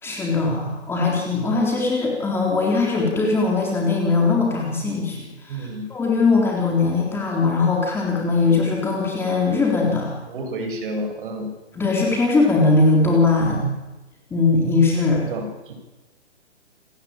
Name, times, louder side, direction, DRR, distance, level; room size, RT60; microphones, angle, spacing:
voice 1, 0.0-10.1 11.8-13.7 14.3-15.2, left 3 dB, 5° left, -2 dB, 3.9 m, -20 dB
voice 2, 5.5-5.9 10.2-11.5 15.1-15.7, right 1 dB, 45° right, 5 dB, 7.5 m, -30 dB
28.5 x 20.0 x 9.0 m, 1.1 s
hypercardioid pair, 165°, 36 cm